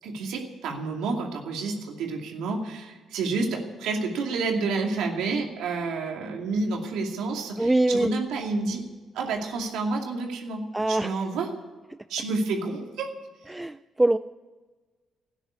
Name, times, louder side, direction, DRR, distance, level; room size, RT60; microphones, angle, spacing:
voice 1, 0.0-8.8 9.1-11.5 12.1-13.1, right 3 dB, 90° right, 2 dB, 2.4 m, -29 dB
voice 2, 7.6-8.1 10.7-11.2 13.5-14.2, right 2 dB, 10° right, 13 dB, 0.4 m, -23 dB
13.0 x 9.8 x 9.5 m, 1.3 s
cardioid pair, 90°, 0 cm